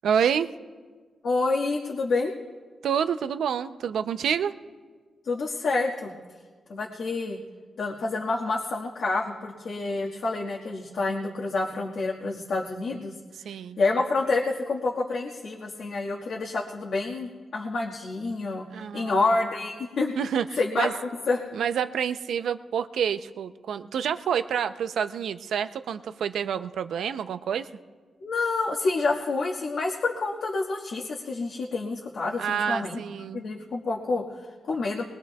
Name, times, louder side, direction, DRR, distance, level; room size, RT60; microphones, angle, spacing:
voice 1, 0.0-0.5 2.8-4.5 13.4-13.8 18.7-19.1 20.2-20.9 21.5-27.7 32.4-33.4, right 8 dB, 85° right, 10 dB, 0.6 m, -28 dB
voice 2, 1.2-2.3 5.2-6.1 6.7-7.4 7.8-13.5 13.8-18.6 18.9-20.1 20.6-20.9 21.3-21.5 28.2-33.0 33.3-35.0, left 3 dB, 70° left, -3 dB, 1.6 m, -28 dB
21.5 x 21.0 x 2.3 m, 1.5 s
cardioid pair, 75°, 0 cm